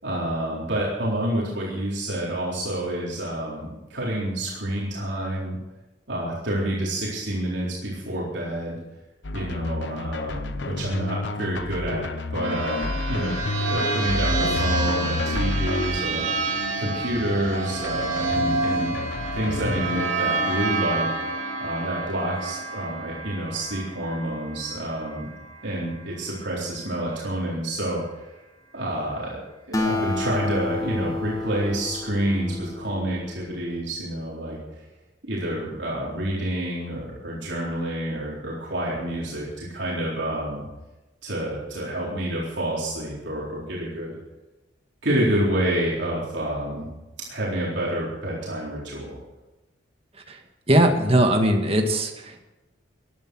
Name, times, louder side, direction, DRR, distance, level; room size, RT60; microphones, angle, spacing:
voice 1, 0.0-5.6 6.1-8.8 9.3-13.3 13.6-19.0 19.3-21.1 21.6-25.3 25.6-28.2 28.7-34.8 35.3-40.7 41.2-44.2 45.0-46.9 47.3-49.2, right 1 dB, 65° right, -5 dB, 4.0 m, -28 dB
sound 1, 9.2-20.1, left 2 dB, 65° left, 0.9 m, -30 dB
sound 2, 12.4-25.6, right 3 dB, 80° right, 2.6 m, -29 dB
Acoustic guitar, 29.7-33.5, left 2 dB, 20° left, 1.7 m, -30 dB
voice 2, 50.7-52.4, right 1 dB, 30° right, 4 dB, 1.8 m, -20 dB
16.5 x 11.0 x 6.3 m, 1.0 s
head